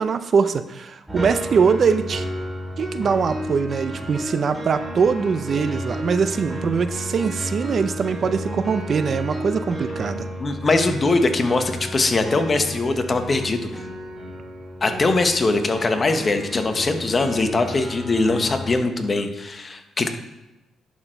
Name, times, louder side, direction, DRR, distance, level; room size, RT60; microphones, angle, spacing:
voice 1, 0.0-2.2 2.8-10.3, right 6 dB, 50° right, 12 dB, 0.5 m, -22 dB
sound 1, 1.1-18.8, equal, 10° right, 2.0 m, -32 dB
voice 2, 10.4-13.7 14.8-20.1, left 3 dB, 35° left, 7 dB, 0.9 m, -21 dB
11.0 x 4.3 x 4.4 m, 0.98 s
cardioid pair, 90°, 0 cm